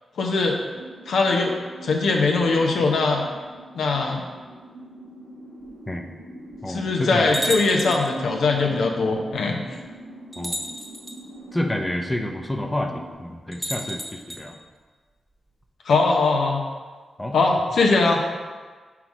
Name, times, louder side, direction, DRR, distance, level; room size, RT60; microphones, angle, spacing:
voice 1, 0.2-0.6 1.1-1.5 1.8-3.2 3.7-4.2 6.7-9.6 15.8-16.6 17.3-18.2, left 3 dB, 85° left, 1 dB, 0.9 m, -21 dB
sound 1, 0.7-13.1, right 1 dB, 75° right, 1.6 m, -42 dB
sound 2, 5.7-5.8 6.5-6.6 7.3-8.2 9.3-9.4 10.3-11.2 13.5-14.4, right 1 dB, 5° right, 1.1 m, -31 dB
voice 2, 6.6-7.4 10.4-10.7 11.5-14.6 17.2-17.4, left 1 dB, 15° left, 3 dB, 0.7 m, -29 dB
5.9 x 3.9 x 6.0 m, 1.4 s
cardioid pair, 75°, 0 cm